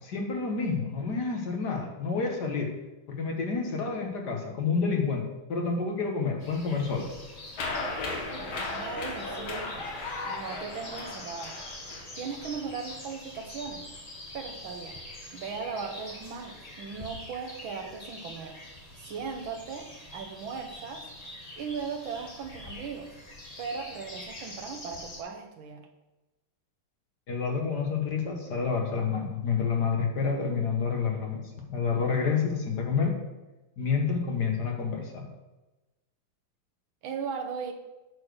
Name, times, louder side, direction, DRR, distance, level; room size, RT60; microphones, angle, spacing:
voice 1, 0.0-2.7 3.1-7.1 27.3-31.4 31.7-33.1 33.8-35.3, left 5 dB, 55° left, 1 dB, 1.7 m, -29 dB
sound 1, 6.4-25.2, left 1 dB, 25° left, 1.0 m, -45 dB
sound 2, 7.6-12.6 12.9-13.0, left 3 dB, 70° left, 2.1 m, -36 dB
voice 2, 8.4-9.9 10.2-11.6 12.2-13.8 14.3-15.0 15.3-18.6 19.0-21.1 21.6-23.1 23.6-25.9 37.0-37.7, right 5 dB, 70° right, 4 dB, 1.8 m, -38 dB
9.2 x 4.6 x 6.4 m, 1.1 s
omnidirectional pair, 2.3 m